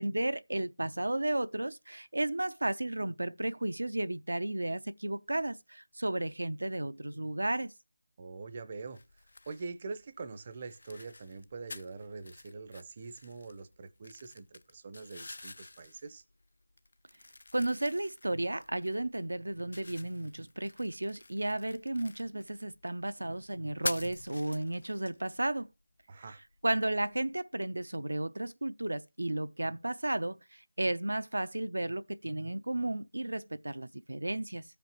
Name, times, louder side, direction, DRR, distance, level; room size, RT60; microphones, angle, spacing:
voice 1, 0.0-7.7 17.5-25.7 26.6-34.6, right 1 dB, 80° right, 0.4 m, -33 dB
voice 2, 8.2-9.0 9.5-16.2 26.1-26.4, right 4 dB, 30° right, 0.6 m, -44 dB
sound 1, 8.9-27.3, left 2 dB, 65° left, 0.4 m, -47 dB
15.0 x 5.0 x 2.9 m
figure-of-eight pair, 165°, 0 cm